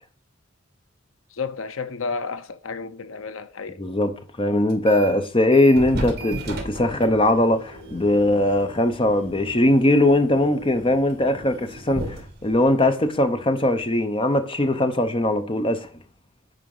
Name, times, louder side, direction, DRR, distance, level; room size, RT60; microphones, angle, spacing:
voice 1, 1.3-3.8, left 4 dB, 75° left, 0.7 m, -31 dB
voice 2, 3.8-15.9, left 1 dB, 25° left, 0.9 m, -20 dB
sound 1, 4.7-5.2 5.5-14.0, right 1 dB, 50° right, 2.6 m, -36 dB
9.2 x 5.0 x 4.8 m
head